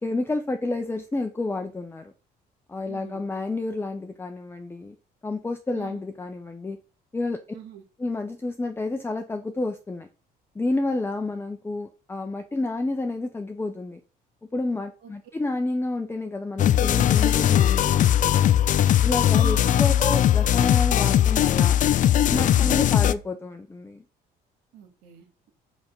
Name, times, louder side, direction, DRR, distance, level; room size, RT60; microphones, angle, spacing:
voice 1, 0.0-2.1 2.7-5.0 5.2-6.8 7.1-7.4 8.0-10.1 10.5-14.0 14.5-18.5 19.0-21.8 22.3-24.0, left 2 dB, 15° left, 6 dB, 0.9 m, -30 dB
voice 2, 2.8-3.2 5.7-6.0 7.5-7.8 15.0-15.1 19.4-20.2 22.4-22.8 24.7-25.5, right 11 dB, 85° right, 3 dB, 2.5 m, -43 dB
sound 1, 16.6-23.1, left 11 dB, 50° left, 0.5 m, -19 dB
5.8 x 5.3 x 6.8 m, 0.33 s
cardioid pair, 110°, 17 cm